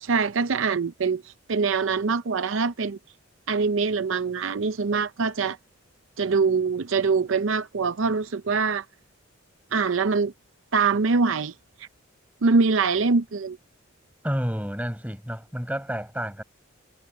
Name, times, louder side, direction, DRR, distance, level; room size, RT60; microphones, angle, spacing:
voice 1, 0.0-3.0 3.5-5.6 6.2-8.8 9.7-10.3 10.7-11.5 11.8-11.9 12.4-13.6, right 4 dB, 70° right, 0.6 m, -24 dB
voice 2, 14.2-16.4, equal, 5° right, 5.4 m, -30 dB
head